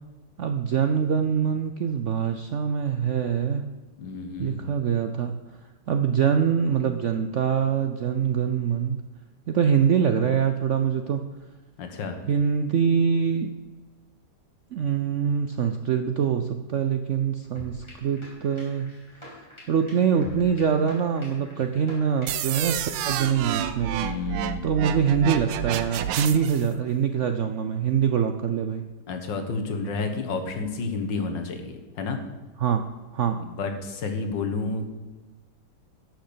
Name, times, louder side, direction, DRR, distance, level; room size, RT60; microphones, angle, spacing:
voice 1, 0.4-3.6 4.4-5.3 5.9-9.0 9.5-11.2 12.3-13.5 14.7-18.9 19.2-24.1 24.6-28.8 32.6-32.8 33.1-33.4, right 7 dB, 70° right, 7 dB, 0.7 m, -24 dB
voice 2, 4.0-4.6 11.8-12.2 24.0-24.7 29.1-32.2 33.5-34.9, left 4 dB, 80° left, 6 dB, 2.0 m, -30 dB
sound 1, 17.6-22.9, left 1 dB, 15° left, 3.4 m, -46 dB
sound 2, 22.3-26.7, right 10 dB, 90° right, 1.4 m, -29 dB
11.5 x 6.3 x 6.9 m, 1.2 s
omnidirectional pair, 1.9 m